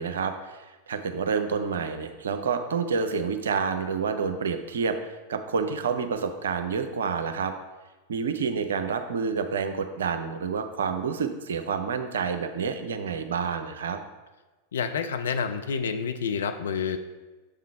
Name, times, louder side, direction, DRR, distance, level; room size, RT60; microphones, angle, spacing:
voice 1, 0.0-7.5 8.1-14.0, right 5 dB, 65° right, 7 dB, 0.6 m, -28 dB
voice 2, 14.7-17.0, left 6 dB, 65° left, 7 dB, 0.5 m, -28 dB
6.7 x 3.7 x 4.7 m, 1.2 s
figure-of-eight pair, 90°, 0 cm